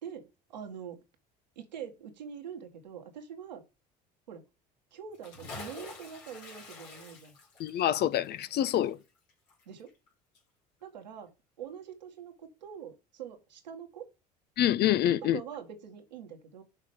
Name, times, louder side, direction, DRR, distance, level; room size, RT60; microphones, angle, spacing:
voice 1, 0.0-1.0 1.6-3.6 4.3-4.4 4.9-7.4 9.7-9.9 10.8-11.3 11.6-14.1 15.2-16.6, right 8 dB, 90° right, 1.8 m, -44 dB
Bathtub (filling or washing) / Splash splatter, 5.1-10.1 10.3-10.4, left 3 dB, 80° left, 3.8 m, -48 dB
voice 2, 7.6-9.0 14.6-15.4, left 12 dB, 50° left, 0.7 m, -26 dB
6.5 x 5.0 x 6.8 m
hypercardioid pair, 70°, 21 cm